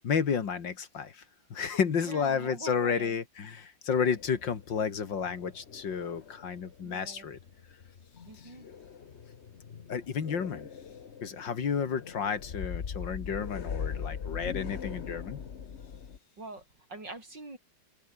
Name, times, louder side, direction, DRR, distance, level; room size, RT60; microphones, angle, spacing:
voice 1, 0.0-1.2 1.5-7.4 9.9-10.7 11.2-15.4, left 6 dB, 75° left, 2.7 m, -31 dB
voice 2, 2.1-3.2 6.8-7.3 8.3-8.7 16.4-16.6 16.9-17.6, right 2 dB, 70° right, 7.5 m, -44 dB
sound 1, 3.9-6.8 7.1-16.2, left 7 dB, 40° left, 1.2 m, -41 dB
omnidirectional pair, 2.0 m